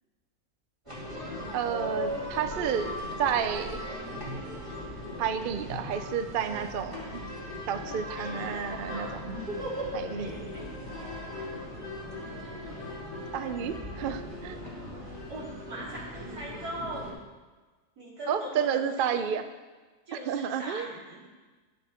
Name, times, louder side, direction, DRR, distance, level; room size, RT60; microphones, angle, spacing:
sound 1, 0.9-17.1, left 1 dB, 20° right, 2.3 m, -38 dB
voice 1, 1.5-3.8 5.2-7.2 7.7-9.2 9.9-10.3 13.3-14.6 18.3-19.5 20.1-20.9, right 8 dB, 65° right, 9 dB, 0.5 m, -31 dB
voice 2, 8.2-8.7 10.1-10.8 15.0-17.2 18.0-19.4 20.1-21.2, right 1 dB, 85° right, -5 dB, 3.2 m, -41 dB
11.0 x 7.6 x 4.3 m, 1.3 s
omnidirectional pair, 1.6 m